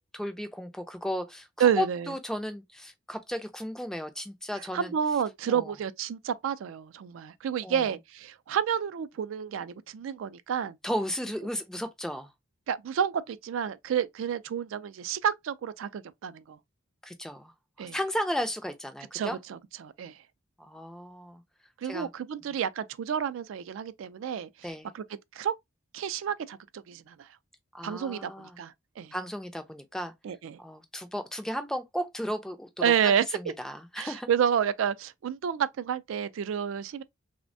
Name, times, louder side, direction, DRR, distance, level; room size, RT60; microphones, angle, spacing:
voice 1, 0.0-4.9 5.5-5.7 7.6-7.9 10.8-12.3 17.0-17.5 17.8-19.4 20.6-21.4 21.8-22.1 24.6-24.9 27.7-28.6 29.1-30.1 30.6-32.7 33.0-34.3, equal, 5° left, 0.3 m, -34 dB
voice 2, 1.6-2.1 4.7-10.8 12.7-16.6 17.8-18.0 19.1-20.1 21.8-24.5 24.9-25.0 25.3-25.5 25.9-27.3 27.8-29.1 30.2-30.6 32.8-33.2 34.0-37.0, right 8 dB, 75° right, 0.3 m, -30 dB
3.3 x 2.1 x 2.5 m
head